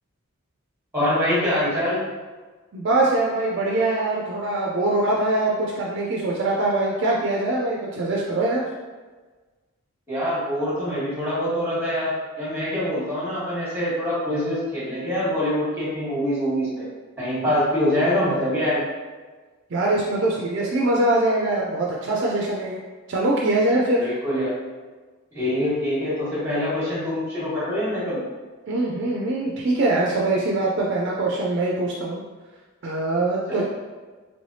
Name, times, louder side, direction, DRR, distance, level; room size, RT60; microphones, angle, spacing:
voice 1, 0.9-2.0 10.1-16.9 17.2-18.8 24.0-24.5 25.3-28.2 33.5-33.6, left 1 dB, 10° right, -8 dB, 1.2 m, -24 dB
voice 2, 2.7-8.6 19.7-22.8 23.1-24.1 28.7-32.2 32.8-33.6, right 2 dB, 50° right, -3 dB, 0.4 m, -23 dB
3.2 x 3.0 x 2.7 m, 1.4 s
head